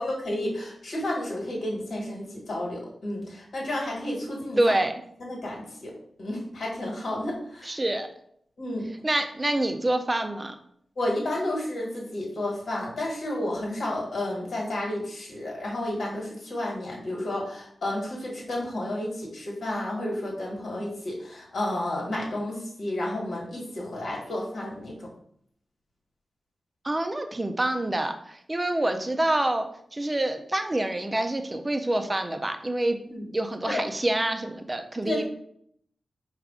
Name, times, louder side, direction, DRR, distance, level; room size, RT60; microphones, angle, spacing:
voice 1, 0.0-4.8 5.2-5.9 6.2-7.7 8.6-8.9 11.0-25.1 33.1-33.2 33.7-33.8 35.0-35.2, left 1 dB, 75° left, -2 dB, 1.5 m, -31 dB
voice 2, 4.6-4.9 7.6-8.1 9.0-10.5 26.8-33.0 33.3-35.2, right 1 dB, 20° right, 7 dB, 0.4 m, -26 dB
4.7 x 2.4 x 3.6 m, 0.68 s
wide cardioid pair, 110°, 0 cm